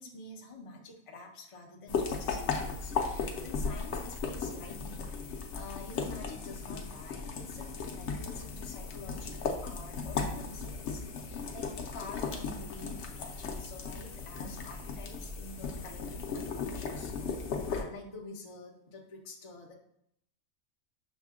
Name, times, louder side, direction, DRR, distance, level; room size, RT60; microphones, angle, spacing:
voice 1, 0.0-17.1 17.7-19.7, left 3 dB, 35° left, 0 dB, 0.5 m, -48 dB
sound 1, 1.9-17.8, left 5 dB, 65° left, 0.9 m, -36 dB
6.2 x 2.2 x 3.5 m, 0.74 s
omnidirectional pair, 1.4 m